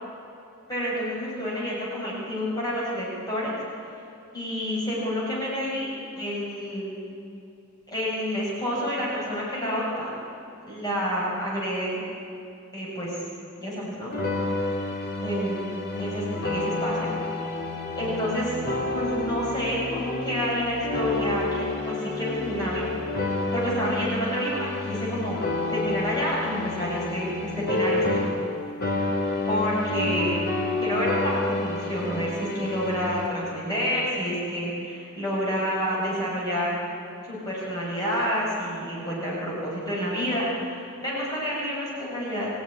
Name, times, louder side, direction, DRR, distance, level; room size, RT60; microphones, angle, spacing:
voice 1, 0.7-3.6 4.3-5.9 6.2-6.9 7.9-10.1 10.7-12.0 12.7-13.2 13.6-14.1 15.2-15.6 15.9-17.6 18.0-18.6 18.9-22.9 23.2-25.4 25.7-28.3 29.5-30.4 30.8-36.8 37.2-42.5, equal, 20° left, -6 dB, 6.7 m, -29 dB
sound 1, 14.1-28.6 28.8-33.3, left 2 dB, 50° left, 3.1 m, -29 dB
23.5 x 16.5 x 10.0 m, 2.6 s
head